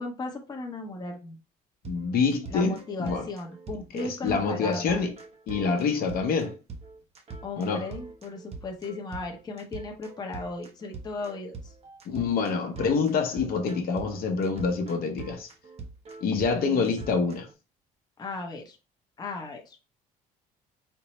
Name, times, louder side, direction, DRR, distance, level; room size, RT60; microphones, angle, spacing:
voice 1, 0.0-1.4 2.5-5.0 7.4-11.7 16.7-17.2 18.2-18.8 19.2-19.9, left 3 dB, 25° left, 0.7 m, -36 dB
voice 2, 1.8-3.2 3.9-5.1 5.5-6.6 7.6-7.8 12.1-15.5 16.2-17.5, left 5 dB, 60° left, 0.8 m, -26 dB
sound 1, 1.8-17.5, right 4 dB, 40° right, 0.7 m, -43 dB
4.3 x 2.0 x 2.9 m
cardioid pair, 110°, 17 cm